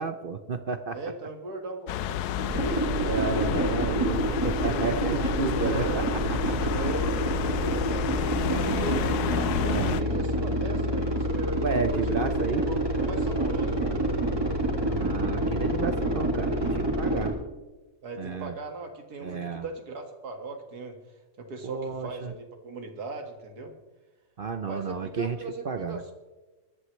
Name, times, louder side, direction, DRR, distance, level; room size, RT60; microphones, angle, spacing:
voice 1, 0.0-1.0 3.1-6.0 6.5-6.7 8.4-9.1 9.6-10.0 11.6-12.7 14.9-17.3 18.2-18.5 19.2-19.6 21.6-22.3 24.4-25.4 25.6-26.0, right 5 dB, 55° right, 9 dB, 0.6 m, -31 dB
voice 2, 0.9-3.2 5.5-6.1 6.7-8.1 8.6-13.9 18.0-21.0 21.4-23.7 24.7-26.1, right 2 dB, 85° right, 5 dB, 2.3 m, -38 dB
sound 1, 1.9-10.0, left 11 dB, 90° left, 1.2 m, -31 dB
sound 2, 2.5-17.3, right 1 dB, 15° right, 2.4 m, -27 dB
21.5 x 11.5 x 3.1 m, 1.2 s
omnidirectional pair, 1.6 m